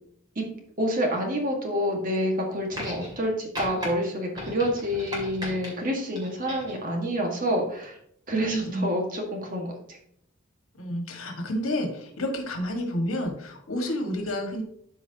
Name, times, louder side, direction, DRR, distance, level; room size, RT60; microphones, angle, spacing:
voice 1, 0.8-7.9 8.3-10.0, equal, 40° right, 1 dB, 1.6 m, -28 dB
sound 1, 2.7-3.2 3.5-3.9 4.3-5.7 6.2-6.8 7.8-7.9, left 1 dB, 20° right, 2.6 m, -36 dB
voice 2, 8.4-8.9 10.8-14.6, equal, 85° left, 3 dB, 1.7 m, -30 dB
12.5 x 4.7 x 2.8 m, 0.68 s
head